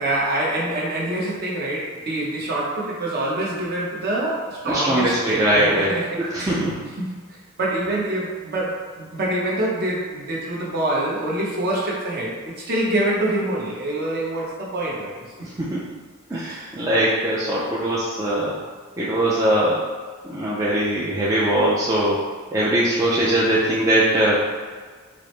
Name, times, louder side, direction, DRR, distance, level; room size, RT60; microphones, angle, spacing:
voice 1, 0.0-6.6 6.8-7.1 7.6-15.1 16.3-16.7, right 1 dB, 45° right, -5 dB, 0.9 m, -25 dB
voice 2, 4.7-6.9 15.4-15.9 16.3-18.6 19.0-19.8 20.2-22.2 22.5-24.5, right 1 dB, 15° right, -7 dB, 0.4 m, -21 dB
4.8 x 2.0 x 3.1 m, 1.5 s
head